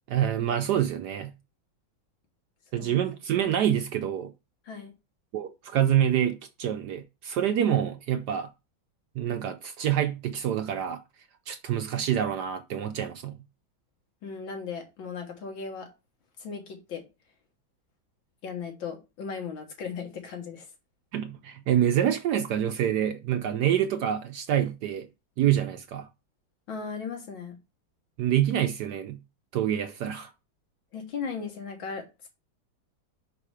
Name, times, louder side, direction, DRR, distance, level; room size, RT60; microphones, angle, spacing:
voice 1, 0.1-1.3 2.7-4.3 5.3-8.5 9.2-11.0 11.5-13.3 21.1-25.1 25.4-26.1 28.2-29.2 29.5-30.3, right 10 dB, 70° right, 1.0 m, -26 dB
voice 2, 14.2-15.9 16.4-17.0 18.4-20.7 26.7-27.6 30.9-32.3, left 5 dB, 75° left, 2.2 m, -37 dB
5.5 x 4.8 x 4.9 m
omnidirectional pair, 2.2 m